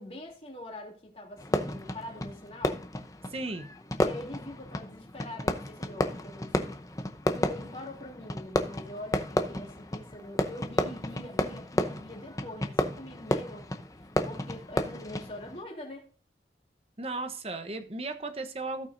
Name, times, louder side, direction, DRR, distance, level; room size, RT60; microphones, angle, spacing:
voice 1, 0.0-2.8 4.0-6.8 7.3-13.7 14.0-16.1, left 1 dB, 35° left, 3.0 m, -44 dB
Fireworks, 1.4-15.6, left 1 dB, 20° left, 0.7 m, -32 dB
voice 2, 3.3-3.7 17.0-18.9, right 2 dB, 35° right, 0.9 m, -35 dB
17.0 x 5.8 x 2.6 m
head